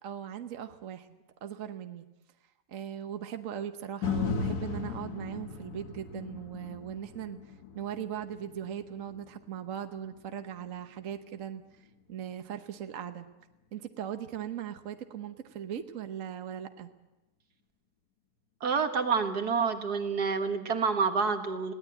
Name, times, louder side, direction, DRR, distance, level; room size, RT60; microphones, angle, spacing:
voice 1, 0.0-2.0 2.7-13.3 13.7-16.9, right 9 dB, 60° right, 8 dB, 1.3 m, -39 dB
sound 1, 4.0-12.2 12.7-12.8, left 4 dB, 75° left, 2.0 m, -38 dB
voice 2, 18.6-21.7, right 5 dB, 80° right, 6 dB, 2.1 m, -28 dB
20.5 x 17.0 x 9.0 m, 1.1 s
omnidirectional pair, 1.7 m